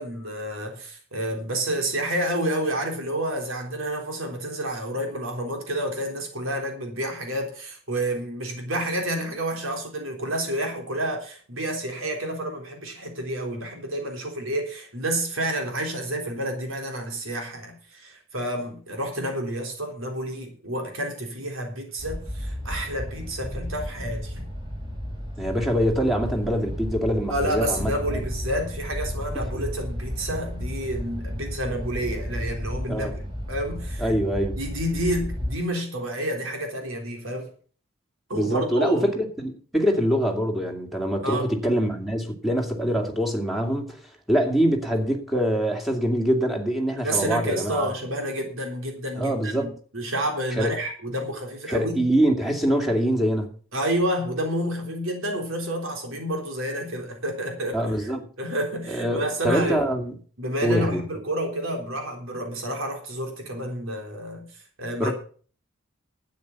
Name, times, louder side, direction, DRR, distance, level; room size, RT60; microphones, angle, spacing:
voice 1, 0.0-24.5 27.3-34.2 34.5-37.5 38.3-39.1 41.2-41.5 47.0-49.7 49.9-52.0 53.7-58.1 58.4-59.9 60.4-65.1, right 1 dB, 70° right, 3.7 m, -29 dB
sound 1, 22.0-35.6, equal, 20° right, 4.5 m, -33 dB
voice 2, 25.4-28.2 32.9-33.1 34.0-34.6 38.3-44.0 44.3-47.9 49.2-49.7 50.6-50.7 51.7-53.5 57.7-58.3 58.9-60.1 60.6-61.0 65.0-65.1, equal, ahead, 2.4 m, -24 dB
12.5 x 9.0 x 5.9 m
head